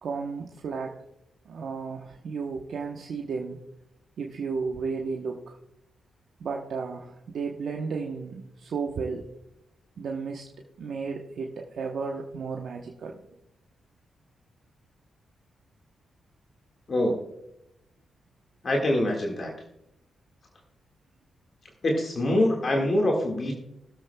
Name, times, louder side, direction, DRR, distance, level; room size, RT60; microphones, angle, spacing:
voice 1, 0.0-1.0 1.5-3.6 4.2-5.6 6.4-9.3 10.0-10.4 10.8-13.2, right 5 dB, 70° right, 1 dB, 0.9 m, -33 dB
voice 2, 16.9-17.2 18.6-19.5 21.8-23.5, left 1 dB, 50° left, 1 dB, 1.7 m, -24 dB
20.0 x 7.5 x 2.2 m, 0.81 s
supercardioid pair, 50°, 0 cm